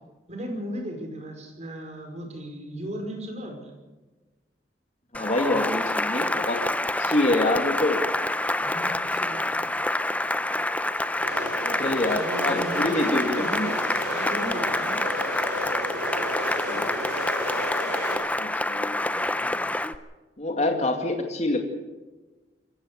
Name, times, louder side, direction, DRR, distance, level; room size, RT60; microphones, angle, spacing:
voice 1, 0.3-3.7 8.6-9.7 12.1-13.6 14.1-15.1 20.6-21.2, equal, 40° right, 4 dB, 5.0 m, -36 dB
voice 2, 5.1-6.6 7.0-8.0 11.6-13.7 16.7-16.9 18.3-19.0 20.4-21.7, left 2 dB, 40° left, 4 dB, 2.4 m, -26 dB
Cheering / Applause, 5.1-20.0, left 1 dB, 10° left, 0.7 m, -27 dB
sound 1, 11.2-18.2, equal, 70° right, 7.6 m, -33 dB
26.5 x 15.5 x 6.6 m, 1.2 s
head